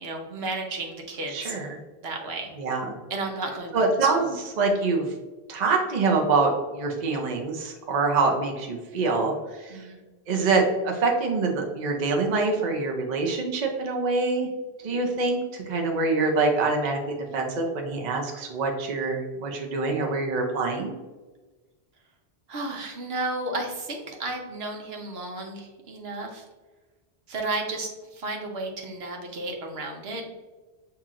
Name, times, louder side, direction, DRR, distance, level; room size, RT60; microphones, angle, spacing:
voice 1, 0.0-1.5 2.0-2.5 3.1-3.8 4.2-4.3 9.7-10.0 17.3-17.4 22.5-26.4 27.3-30.2, right 2 dB, 75° right, 1 dB, 1.1 m, -33 dB
voice 2, 1.3-1.8 2.6-3.0 3.7-5.1 5.5-9.3 9.6-9.8 10.3-14.5 14.8-20.9, right 3 dB, 45° right, 1 dB, 0.7 m, -25 dB
7.0 x 2.8 x 2.4 m, 1.3 s
omnidirectional pair, 1.1 m